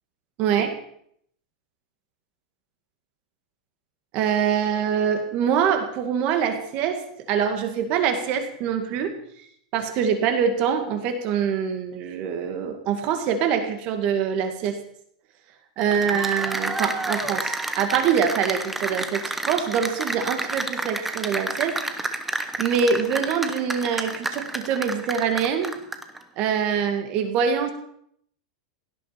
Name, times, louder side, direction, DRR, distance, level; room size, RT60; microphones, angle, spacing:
voice 1, 4.1-9.1 9.7-14.8 15.8-21.8 22.6-25.8 26.4-27.7, right 7 dB, 30° right, 7 dB, 2.0 m, -24 dB
Cheering / Applause, 15.8-26.2, right 2 dB, 5° right, 0.9 m, -30 dB
17.0 x 12.5 x 5.9 m, 0.67 s
supercardioid pair, 180°, 4 cm